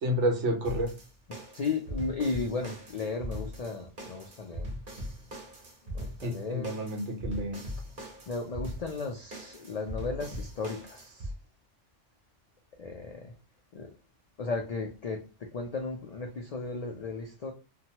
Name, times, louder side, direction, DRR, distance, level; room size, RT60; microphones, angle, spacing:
voice 1, 0.0-0.9 6.2-7.6, equal, 70° right, 3 dB, 1.1 m, -29 dB
sound 1, 0.6-11.3, equal, 45° right, 1.1 m, -40 dB
voice 2, 1.5-4.7 5.8-6.9 8.3-11.3 12.8-13.3 13.7-13.9 14.4-17.5, left 4 dB, 85° left, 3 dB, 0.3 m, -35 dB
2.8 x 2.2 x 2.8 m, 0.35 s
omnidirectional pair, 1.2 m